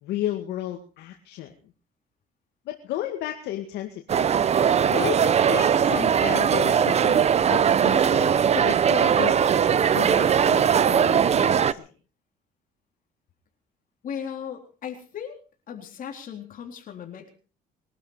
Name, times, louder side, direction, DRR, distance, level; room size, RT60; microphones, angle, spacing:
voice 1, 0.0-1.5 2.7-4.3 4.9-9.4 9.9-11.9, left 12 dB, 85° left, 3 dB, 2.1 m, -33 dB
sound 1, 4.1-11.7, right 8 dB, 40° right, 0.8 m, -20 dB
voice 2, 14.0-15.4 15.7-17.3, left 8 dB, 55° left, 4 dB, 3.7 m, -37 dB
23.0 x 12.0 x 5.0 m, 0.37 s
cardioid pair, 110°, 17 cm